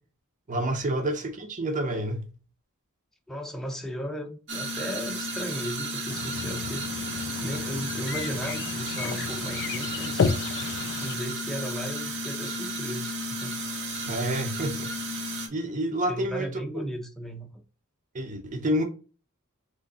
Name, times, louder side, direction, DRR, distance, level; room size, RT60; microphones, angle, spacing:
voice 1, 0.5-2.3 14.0-14.9 15.5-16.5 18.1-18.8, right 1 dB, 35° right, 0.7 m, -28 dB
voice 2, 3.3-6.9 7.4-10.3 11.0-13.6 16.1-17.6, equal, ahead, 0.6 m, -36 dB
sound 1, 4.5-15.5, right 1 dB, 60° right, 1.0 m, -33 dB
sound 2, 6.1-11.2, left 5 dB, 55° left, 0.4 m, -32 dB
3.8 x 3.1 x 3.8 m
head